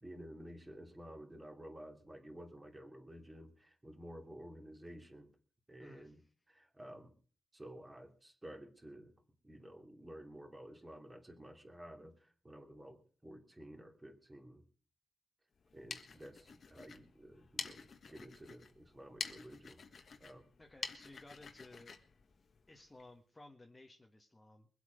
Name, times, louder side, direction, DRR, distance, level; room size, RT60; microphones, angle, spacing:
voice 1, 0.0-5.3 5.7-6.2 6.5-7.1 7.5-9.1 9.4-14.6 15.7-19.8 20.2-20.4, equal, 15° right, 3 dB, 2.8 m, -52 dB
voice 2, 5.8-6.3 20.6-21.9 22.7-24.7, left 2 dB, 15° left, 2 dB, 1.5 m, -57 dB
sound 1, 15.6-23.1, left 5 dB, 55° left, 1.6 m, -48 dB
23.5 x 8.3 x 5.2 m, 0.41 s
wide cardioid pair, 130°, 0 cm